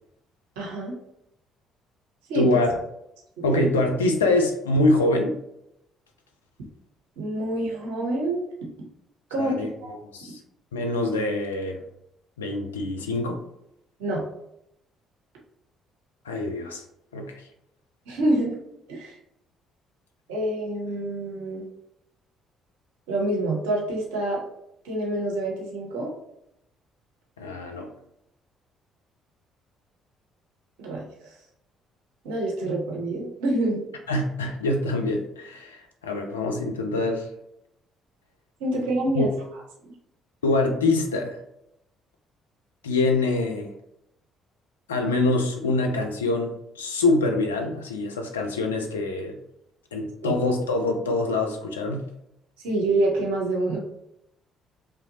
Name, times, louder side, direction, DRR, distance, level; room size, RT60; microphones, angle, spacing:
voice 1, 0.6-0.9 2.3-2.5 3.5-3.7 7.2-8.4 9.3-9.9 14.0-14.2 18.1-18.5 18.9-19.2 20.3-21.6 23.1-24.4 24.8-26.1 30.8-31.0 32.2-33.8 38.6-39.3 50.2-50.4 52.6-53.8, right 1 dB, 75° right, -2 dB, 0.8 m, -26 dB
voice 2, 2.3-2.7 3.4-5.4 9.4-9.7 10.1-10.4 10.7-11.8 12.4-13.4 16.3-16.8 17.1-17.3 27.4-27.9 34.1-37.3 39.1-39.3 40.4-41.4 42.8-43.7 44.9-49.4 49.9-52.1, left 2 dB, 90° left, 3 dB, 0.4 m, -24 dB
3.0 x 2.4 x 2.7 m, 0.79 s
hypercardioid pair, 50°, 0 cm